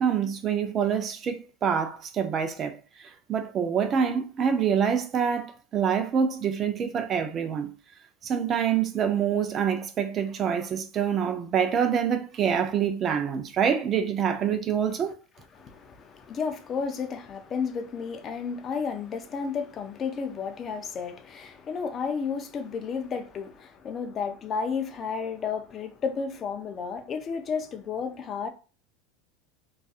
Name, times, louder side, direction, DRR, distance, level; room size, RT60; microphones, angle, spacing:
voice 1, 0.0-2.7 3.3-7.7 8.2-15.1, right 7 dB, 35° right, 0.4 m, -26 dB
voice 2, 15.5-28.5, left 5 dB, 35° left, 0.4 m, -32 dB
2.5 x 2.4 x 2.4 m
supercardioid pair, 125°, 0 cm